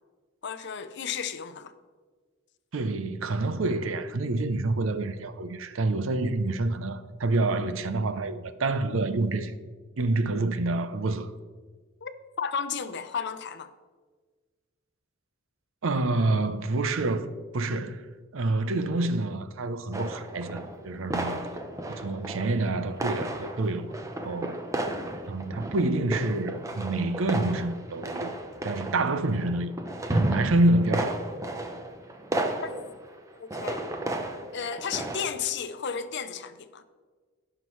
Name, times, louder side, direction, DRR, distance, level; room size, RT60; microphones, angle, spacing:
voice 1, 0.4-1.7 12.0-12.1 12.4-13.7 32.6-32.7 33.4-33.9 34.5-36.8, left 7 dB, 60° left, 0.6 m, -33 dB
voice 2, 2.7-9.5 10.0-11.3 15.8-17.3 17.5-18.0 18.3-21.5 21.9-23.9 24.2-24.5 25.3-29.7 30.1-31.2, right 2 dB, 70° right, 0.6 m, -27 dB
sound 1, 19.9-20.8 21.1-22.7 22.9-35.3, right 1 dB, 15° right, 0.7 m, -33 dB
16.0 x 5.8 x 3.1 m
head